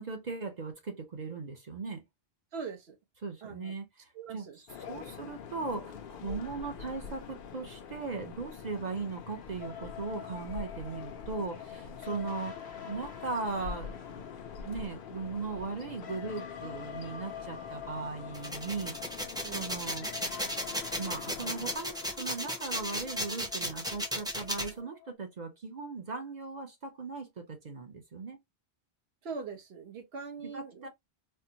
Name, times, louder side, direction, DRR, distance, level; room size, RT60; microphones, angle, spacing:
voice 1, 0.0-2.0 3.2-4.5 4.8-12.6 12.9-14.3 14.6-18.9 19.5-20.1 21.0-28.4 30.4-30.9, right 4 dB, 45° right, 0.8 m, -38 dB
voice 2, 2.5-3.0 3.4-3.7 4.1-4.6 4.9-5.0 12.1-12.3 19.4-19.9 29.2-30.9, right 5 dB, 75° right, 1.2 m, -42 dB
sound 1, 4.7-21.8, left 6 dB, 60° left, 0.7 m, -45 dB
sound 2, 9.6-25.1, left 8 dB, 90° left, 1.0 m, -47 dB
sound 3, 18.3-24.7, equal, 5° right, 0.6 m, -35 dB
4.4 x 2.0 x 2.7 m
omnidirectional pair, 1.1 m